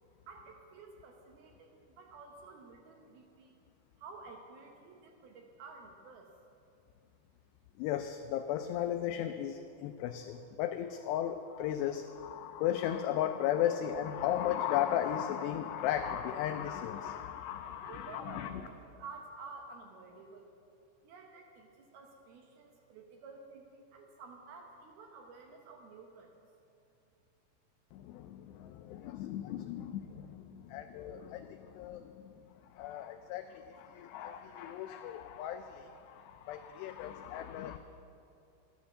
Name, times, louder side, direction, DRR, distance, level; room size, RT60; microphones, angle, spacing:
voice 1, 0.3-3.5 4.0-6.3 17.5-17.6 17.9-20.5 21.0-26.5, right 4 dB, 70° right, 2 dB, 2.4 m, -51 dB
voice 2, 7.8-18.6 27.9-32.3 32.8-37.8, left 10 dB, 90° left, 7 dB, 2.4 m, -36 dB
13.5 x 10.5 x 7.0 m, 2.6 s
omnidirectional pair, 5.4 m